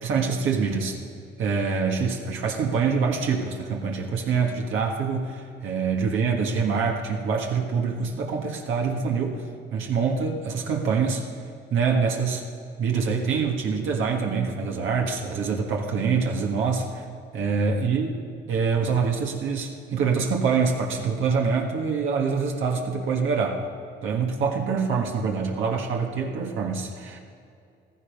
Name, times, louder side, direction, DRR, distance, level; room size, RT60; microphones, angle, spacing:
voice 1, 0.0-1.0 1.4-9.4 9.7-11.3 11.7-12.4 12.8-17.0 17.3-18.1 18.5-23.6 24.0-27.2, right 5 dB, 80° right, 1 dB, 1.6 m, -25 dB
15.0 x 13.5 x 5.4 m, 2.4 s
cardioid pair, 90°, 20 cm